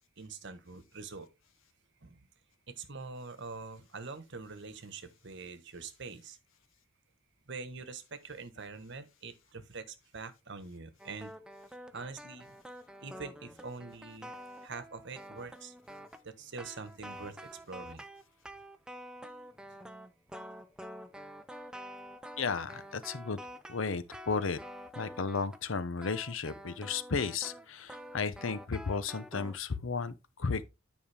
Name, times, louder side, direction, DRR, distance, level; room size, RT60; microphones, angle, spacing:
voice 1, 0.2-1.3 2.0-2.2 2.7-6.4 7.5-11.3 11.9-12.5 13.0-14.3 14.6-15.7 16.2-18.0, right 4 dB, 65° right, 1.2 m, -44 dB
sound 1, 11.0-25.7 26.0-29.6, equal, 5° right, 0.7 m, -48 dB
voice 2, 22.4-23.4 23.7-24.6 25.0-30.6, left 4 dB, 80° left, 0.8 m, -34 dB
9.6 x 5.2 x 3.4 m
head